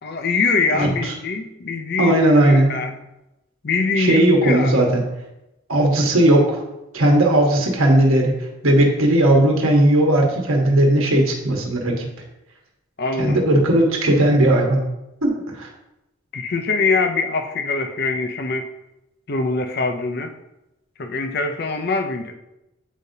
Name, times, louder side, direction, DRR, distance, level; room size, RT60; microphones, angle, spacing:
voice 1, 0.0-2.1 2.4-2.9 3.6-4.8 13.0-13.4 16.3-18.7 19.3-20.3 21.0-22.3, left 4 dB, 45° left, 6 dB, 0.5 m, -23 dB
voice 2, 2.0-2.8 4.0-5.0 5.7-6.6 6.9-8.4 8.6-12.1 13.2-14.9 15.2-15.7, right 1 dB, 80° right, 1 dB, 1.2 m, -17 dB
8.2 x 5.1 x 2.7 m, 0.92 s
head